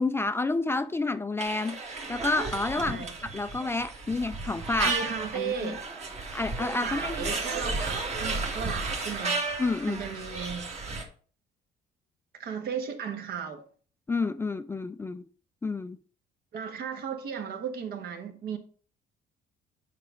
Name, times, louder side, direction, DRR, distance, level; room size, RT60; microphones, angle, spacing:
voice 1, 0.0-5.0 5.3-5.8 6.3-7.3 9.6-10.0 14.1-15.2 15.6-16.0, left 3 dB, 15° left, 0.3 m, -30 dB
sound 1, 1.4-11.0, right 3 dB, 40° right, 1.7 m, -33 dB
voice 2, 2.8-3.1 4.8-5.9 6.8-9.4 9.9-10.7 12.3-13.6 16.5-18.6, right 7 dB, 65° right, 1.5 m, -35 dB
7.5 x 5.2 x 3.8 m
cardioid pair, 110°, 17 cm